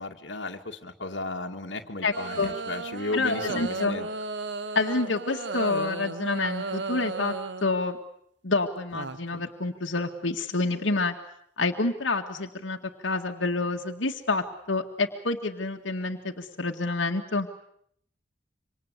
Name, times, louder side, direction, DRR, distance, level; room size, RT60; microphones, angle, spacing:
voice 1, 0.0-4.1, left 2 dB, 70° left, 3 dB, 2.2 m, -35 dB
voice 2, 2.0-2.5 3.1-3.9 4.7-7.3 7.6-8.0 8.4-11.1 11.6-17.5, left 3 dB, 90° left, 2 dB, 2.0 m, -28 dB
sound 1, 2.1-7.7 8.9-9.5, right 3 dB, 70° right, 1.3 m, -34 dB
27.0 x 25.5 x 8.3 m, 0.70 s
head